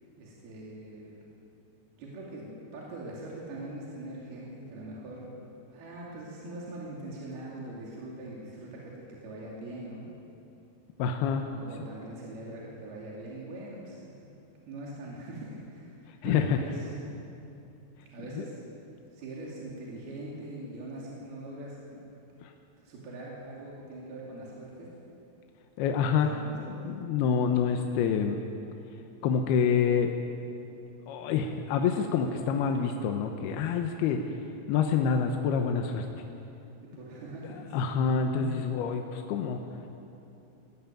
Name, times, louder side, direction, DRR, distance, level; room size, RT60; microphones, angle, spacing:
voice 1, 0.1-1.4 2.0-10.1 11.5-14.1 14.7-17.0 18.1-18.6 19.1-22.0 22.8-24.9 26.2-26.8 36.8-37.9, right 1 dB, 65° right, -5 dB, 4.6 m, -42 dB
voice 2, 11.0-11.5 16.2-16.6 18.4-18.5 22.4-22.5 25.8-26.4 26.7-28.4 29.2-30.1 31.1-34.2 34.7-36.1 37.7-39.6, left 6 dB, 75° left, 4 dB, 2.8 m, -27 dB
20.0 x 14.0 x 9.1 m, 2.8 s
omnidirectional pair, 4.8 m